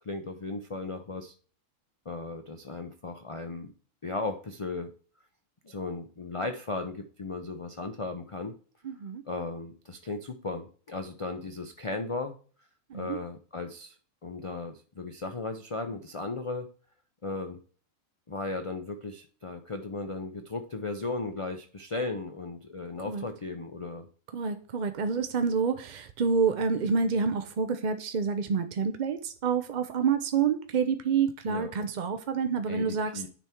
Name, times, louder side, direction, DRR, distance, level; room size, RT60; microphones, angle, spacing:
voice 1, 0.0-1.3 2.1-3.7 4.0-4.9 5.6-8.5 9.3-12.4 12.9-13.9 14.2-16.7 17.2-17.6 18.3-24.1 31.5-31.7 32.7-33.3, left 3 dB, 45° left, 6 dB, 0.4 m, -36 dB
voice 2, 8.8-9.2 12.9-13.2 23.1-23.2 24.3-33.3, right 6 dB, 55° right, 9 dB, 0.5 m, -28 dB
10.0 x 3.5 x 4.4 m, 0.41 s
omnidirectional pair, 1.5 m